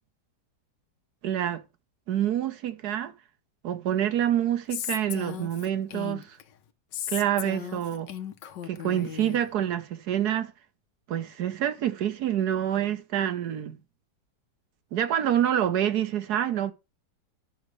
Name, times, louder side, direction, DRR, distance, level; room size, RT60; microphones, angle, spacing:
voice 1, 1.2-1.6 2.1-3.1 3.6-6.4 7.1-8.1 8.6-10.5 11.1-13.8 14.9-16.7, right 10 dB, 65° right, 1.5 m, -27 dB
Female speech woman speaking, 4.7-6.4 6.9-9.4, left 10 dB, 85° left, 1.5 m, -36 dB
12.0 x 6.4 x 3.2 m
omnidirectional pair, 1.9 m